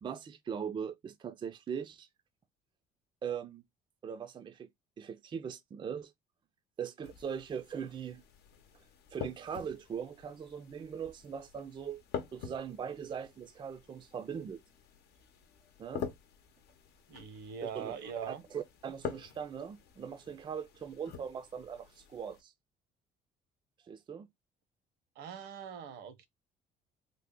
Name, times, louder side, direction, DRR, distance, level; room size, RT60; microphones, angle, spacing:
voice 1, 0.0-2.1 3.2-3.6 4.0-4.7 5.0-6.1 6.8-8.2 9.1-12.0 12.3-14.6 15.8-16.1 17.6-22.5 23.9-24.3, right 7 dB, 30° right, 0.4 m, -40 dB
sound 1, 7.0-22.4, left 7 dB, 75° left, 0.8 m, -47 dB
voice 2, 17.1-18.4 25.2-26.3, right 7 dB, 80° right, 0.8 m, -42 dB
3.3 x 2.0 x 3.6 m
cardioid pair, 110°, 17 cm